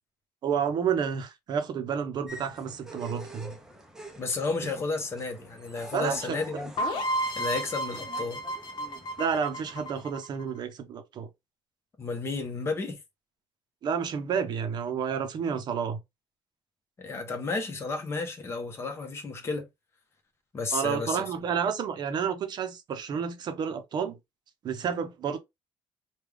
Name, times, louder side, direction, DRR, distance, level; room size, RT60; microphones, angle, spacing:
voice 1, 0.4-3.5 5.9-6.6 9.2-11.3 13.8-16.0 20.7-24.2 24.6-25.4, right 7 dB, 45° right, 0.7 m, -30 dB
sound 1, 2.3-10.1, right 1 dB, 5° right, 0.6 m, -47 dB
voice 2, 4.2-6.7 7.4-8.4 12.0-13.0 17.0-19.7 20.5-21.2, left 3 dB, 25° left, 0.9 m, -32 dB
sound 2, 6.8-10.5, equal, 55° left, 0.9 m, -32 dB
3.3 x 2.3 x 3.4 m
cardioid pair, 150°, 10 cm